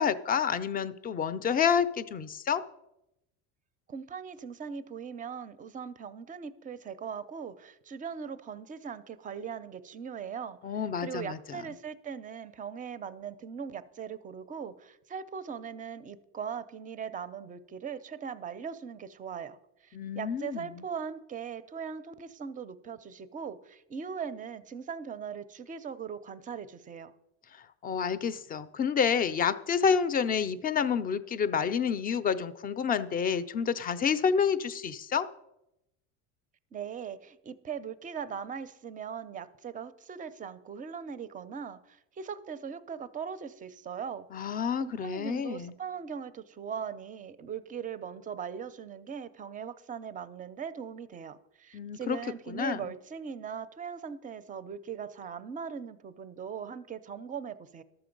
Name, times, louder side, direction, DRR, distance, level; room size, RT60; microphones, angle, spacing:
voice 1, 0.0-2.6 10.6-11.6 19.9-20.8 27.8-35.3 44.3-45.7 51.7-52.2 52.5-52.8, left 7 dB, 25° left, 14 dB, 0.5 m, -29 dB
voice 2, 3.9-10.6 11.0-27.1 36.7-44.3 44.8-57.8, right 7 dB, 25° right, 15 dB, 0.5 m, -40 dB
12.0 x 6.9 x 5.2 m, 0.85 s
supercardioid pair, 125°, 34 cm